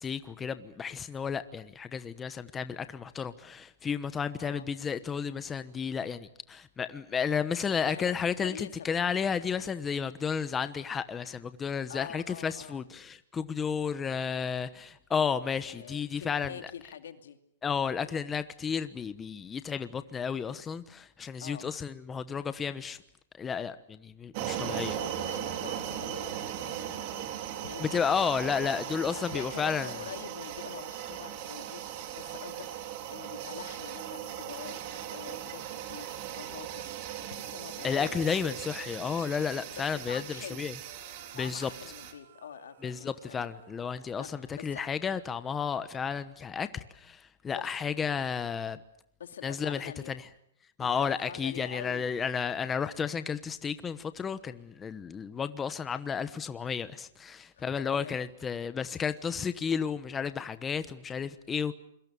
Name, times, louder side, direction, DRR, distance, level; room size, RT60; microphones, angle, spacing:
voice 1, 0.0-16.5 17.6-23.0 23.4-25.0 27.8-29.9 37.8-40.2 40.5-40.7 41.3-41.7 42.8-48.8 49.4-50.2 50.8-61.7, left 6 dB, 15° left, 1.1 m, -32 dB
voice 2, 7.8-8.1 8.4-8.9 11.9-12.8 15.6-17.4 18.0-18.2 21.4-21.7 24.9-28.2 29.1-32.7 33.1-36.1 36.3-36.9 37.2-38.6 39.8-40.6 41.3-43.5 44.1-44.8 47.5-47.9 49.2-50.1 50.8-52.1 57.5-58.1, left 8 dB, 80° left, 2.5 m, -45 dB
sound 1, 24.3-42.1, right 11 dB, 45° right, 3.6 m, -38 dB
sound 2, 40.8-45.9, right 7 dB, 65° right, 5.1 m, -58 dB
28.0 x 23.0 x 7.0 m
hypercardioid pair, 140°, 0 cm